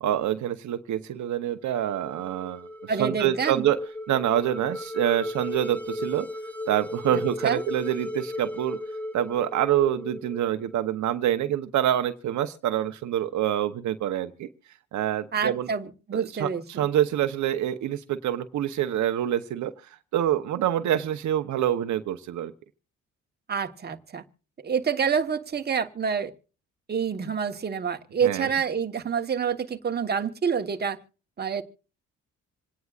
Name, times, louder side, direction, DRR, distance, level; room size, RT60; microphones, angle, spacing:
voice 1, 0.0-3.8 4.1-6.3 6.7-8.8 9.1-14.5 14.9-15.7 16.1-19.7 20.1-22.5 28.2-28.5, right 11 dB, 70° right, 0.9 m, -26 dB
sound 1, 1.8-11.0, left 1 dB, 5° left, 1.6 m, -35 dB
voice 2, 2.9-3.7 7.1-7.6 15.3-16.9 23.5-24.2 24.6-26.3 26.9-31.0 31.4-31.6, right 6 dB, 35° right, 1.2 m, -27 dB
27.0 x 9.4 x 2.4 m
cardioid pair, 90°, 30 cm